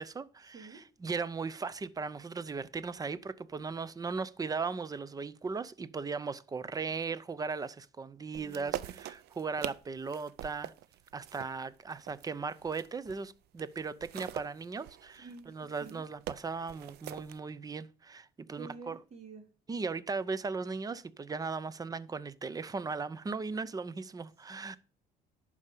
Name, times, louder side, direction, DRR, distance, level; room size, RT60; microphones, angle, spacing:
voice 1, 0.0-10.7 11.1-19.0 19.7-24.8, right 4 dB, 20° right, 0.7 m, -37 dB
sound 1, 8.3-13.3 13.6-17.4, right 13 dB, 75° right, 0.6 m, -44 dB
voice 2, 8.4-9.1 15.2-16.0 18.5-19.4, right 4 dB, 40° right, 2.7 m, -49 dB
11.0 x 4.9 x 6.8 m
cardioid pair, 110°, 17 cm